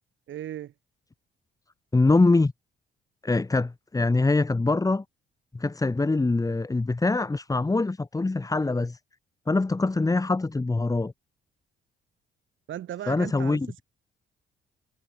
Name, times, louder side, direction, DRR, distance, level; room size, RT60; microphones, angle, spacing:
voice 1, 0.3-0.7 12.7-13.8, right 11 dB, 75° right, 7.9 m, -37 dB
voice 2, 1.9-2.5 3.2-5.0 5.5-9.0 9.5-11.1 13.1-13.7, left 3 dB, 15° left, 1.6 m, -23 dB
cardioid pair, 90°, 20 cm